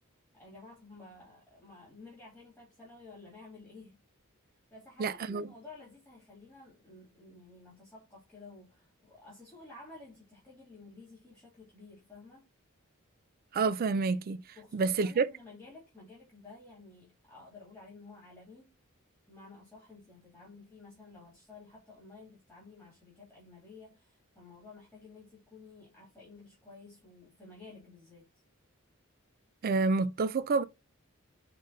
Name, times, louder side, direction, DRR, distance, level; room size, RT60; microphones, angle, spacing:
voice 1, 0.3-4.0 4.7-12.5 14.6-18.7 19.3-28.2, left 3 dB, 5° left, 2.4 m, -53 dB
voice 2, 5.0-5.5 13.5-14.4 14.7-15.3 29.6-30.6, right 4 dB, 45° right, 0.4 m, -28 dB
5.0 x 3.6 x 2.6 m
head